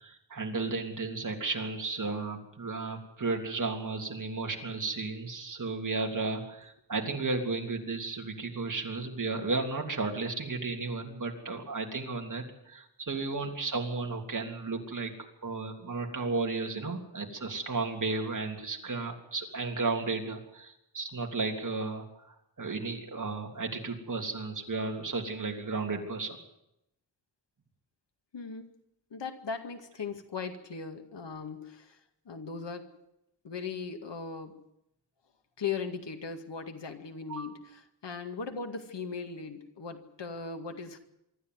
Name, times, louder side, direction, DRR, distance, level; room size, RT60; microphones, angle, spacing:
voice 1, 0.0-15.1 15.4-26.4 37.3-37.5, right 3 dB, 45° right, 2 dB, 3.3 m, -34 dB
voice 2, 28.3-28.7 29.1-32.0 32.3-32.9 33.4-34.6 35.6-41.0, left 5 dB, 85° left, 6 dB, 2.2 m, -38 dB
24.5 x 13.0 x 9.5 m, 0.83 s
wide cardioid pair, 140°, 42 cm